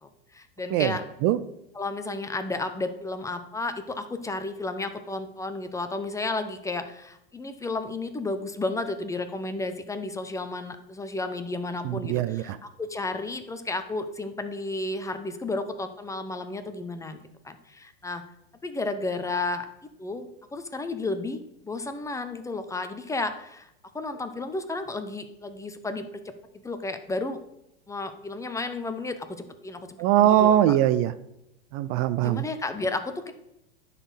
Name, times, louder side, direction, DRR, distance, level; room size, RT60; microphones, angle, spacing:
voice 1, 0.0-1.0 1.7-17.2 17.4-18.2 18.6-19.7 20.0-21.4 21.6-23.7 23.9-26.3 26.6-27.4 27.9-29.8 30.1-30.8 32.2-33.3, left 2 dB, 10° left, 9 dB, 0.7 m, -32 dB
voice 2, 0.7-1.4 11.8-12.6 30.0-31.1 31.7-32.4, right 12 dB, 45° right, 14 dB, 0.6 m, -22 dB
9.9 x 4.2 x 7.1 m, 0.83 s
hypercardioid pair, 115°, 30 cm